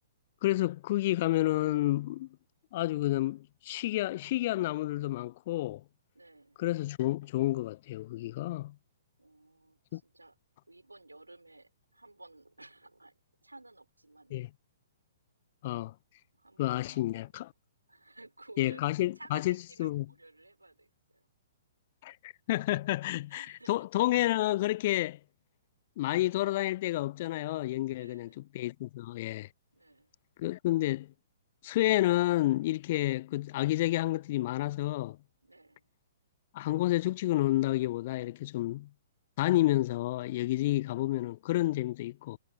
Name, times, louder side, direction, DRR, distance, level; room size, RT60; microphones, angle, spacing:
voice 1, 0.4-2.3 2.7-5.8 6.6-8.7 9.9-10.0 14.3-14.5 15.6-15.9 16.6-17.5 18.6-20.0 22.0-25.2 26.0-28.3 28.5-29.5 30.4-31.1 31.6-35.2 36.5-38.9 39.4-42.4, left 16 dB, 40° left, 0.4 m, -30 dB
voice 2, 6.1-6.6 9.2-10.4 10.7-13.1 13.4-14.4 16.3-17.5 17.9-21.3 23.3-23.9 27.9-28.5 29.7-30.1 35.4-35.9 40.6-41.4, right 2 dB, 80° right, 4.9 m, -55 dB
figure-of-eight pair, 115°, 0 cm